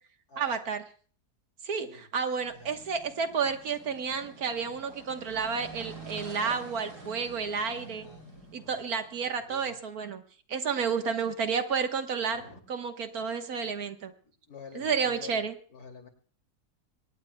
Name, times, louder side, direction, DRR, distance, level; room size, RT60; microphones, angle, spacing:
voice 1, 0.4-0.8 1.6-8.1 8.5-10.2 10.5-12.4 12.7-14.1 14.8-15.5, right 6 dB, 70° right, 7 dB, 1.7 m, -31 dB
sound 1, 2.4-9.4, right 2 dB, 90° right, 7.3 m, -48 dB
voice 2, 2.5-2.8 7.7-8.2 8.5-8.8 9.2-9.8 12.3-12.6 14.2-15.4 15.7-16.1, left 5 dB, 75° left, 3 dB, 3.2 m, -48 dB
23.0 x 19.0 x 2.2 m, 0.42 s
omnidirectional pair, 1.6 m